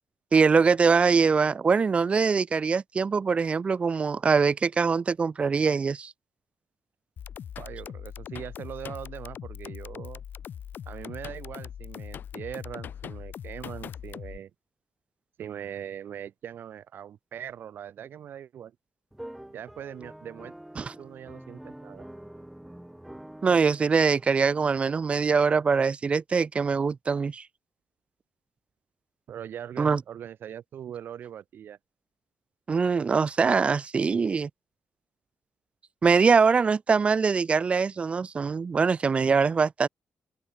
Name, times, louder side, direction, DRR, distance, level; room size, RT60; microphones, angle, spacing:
voice 1, 0.3-6.1 20.8-20.9 23.4-27.4 29.8-30.0 32.7-34.5 36.0-39.9, right 5 dB, 30° right, 1.0 m, -23 dB
sound 1, 7.2-14.4, left 9 dB, 55° left, 7.1 m, -40 dB
voice 2, 7.6-10.2 10.9-14.5 15.4-18.7 19.5-20.5 21.0-22.1 29.3-31.8, right 9 dB, 60° right, 8.0 m, -41 dB
sound 2, 19.1-25.0, right 1 dB, 5° right, 7.8 m, -46 dB
open air
cardioid pair, 155°, 4 cm